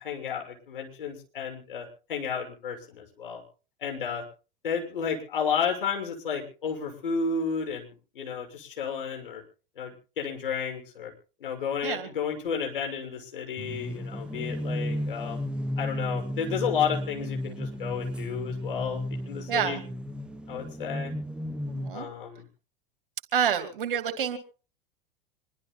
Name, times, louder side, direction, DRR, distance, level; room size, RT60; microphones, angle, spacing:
voice 1, 0.0-3.4 3.8-4.2 4.6-9.4 9.8-11.1 11.4-15.4 15.8-19.8 20.5-21.1 21.9-22.4, left 6 dB, 65° left, 2 dB, 6.6 m, -32 dB
sound 1, 13.6-21.9, equal, 5° right, 1.0 m, -34 dB
voice 2, 19.5-19.8 21.7-22.1 23.3-24.4, right 8 dB, 65° right, 9 dB, 2.9 m, -28 dB
26.0 x 23.5 x 2.2 m, 0.38 s
figure-of-eight pair, 90°, 29 cm